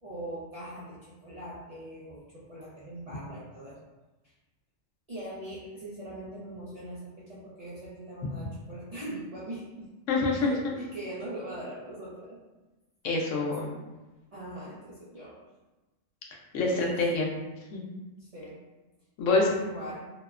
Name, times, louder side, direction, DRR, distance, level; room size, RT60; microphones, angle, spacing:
voice 1, 0.0-3.8 5.1-9.9 10.4-12.4 14.3-15.4 16.6-17.0 18.2-18.6 19.5-20.1, right 1 dB, 55° right, -9 dB, 0.4 m, -41 dB
voice 2, 10.1-10.5 13.0-13.7 16.5-17.3 17.7-17.8 19.2-19.5, left 3 dB, 85° left, -1 dB, 0.9 m, -26 dB
2.8 x 2.1 x 2.3 m, 1.1 s
omnidirectional pair, 1.3 m